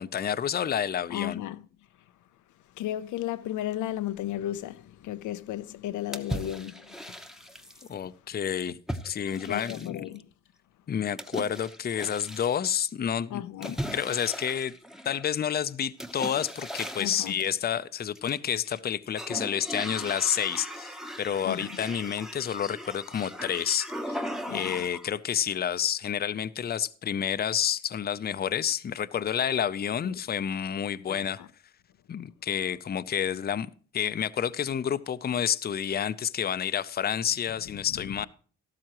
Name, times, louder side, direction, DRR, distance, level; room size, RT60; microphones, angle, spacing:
voice 1, 0.0-1.4 7.9-8.8 9.0-10.0 10.9-14.7 15.0-24.2 24.5-31.4 32.1-38.3, left 9 dB, 30° left, 0.5 m, -29 dB
voice 2, 1.1-1.6 2.7-7.2 9.4-10.2 13.3-13.8 17.0-17.4 21.4-21.8 24.5-24.9 30.0-30.2 31.1-31.5 37.7-38.3, left 13 dB, 75° left, 0.6 m, -35 dB
sound 1, 6.1-7.9 8.9-10.2 11.2-12.6 13.6-15.3 16.0-17.5 18.1-18.8 19.1-25.1, equal, ahead, 0.9 m, -38 dB
13.0 x 12.5 x 3.0 m
cardioid pair, 90°, 30 cm